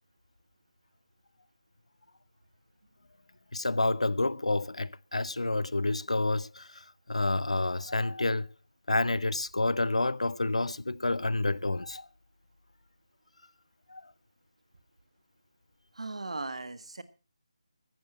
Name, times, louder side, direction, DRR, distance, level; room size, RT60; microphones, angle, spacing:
voice 1, 3.5-8.5 8.9-12.1 13.9-14.1, left 2 dB, 75° left, 0.7 m, -29 dB
voice 2, 15.9-17.0, right 3 dB, 70° right, 1.7 m, -37 dB
15.0 x 14.5 x 4.2 m
figure-of-eight pair, 155°, 3 cm